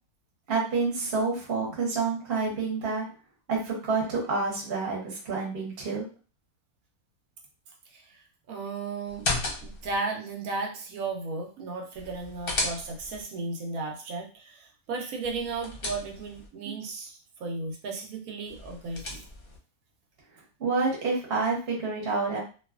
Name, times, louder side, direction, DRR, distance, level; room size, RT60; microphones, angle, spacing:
voice 1, 0.5-3.1 3.5-6.0 20.6-22.4, right 4 dB, 45° right, -3 dB, 1.1 m, -28 dB
voice 2, 8.5-9.2 9.6-19.2, right 3 dB, 75° right, 1 dB, 1.1 m, -35 dB
sound 1, 9.1-10.0 12.0-13.2 15.2-16.5 18.5-19.6, left 2 dB, 50° left, 0.8 m, -34 dB
2.7 x 2.3 x 2.3 m, 0.36 s
omnidirectional pair, 1.6 m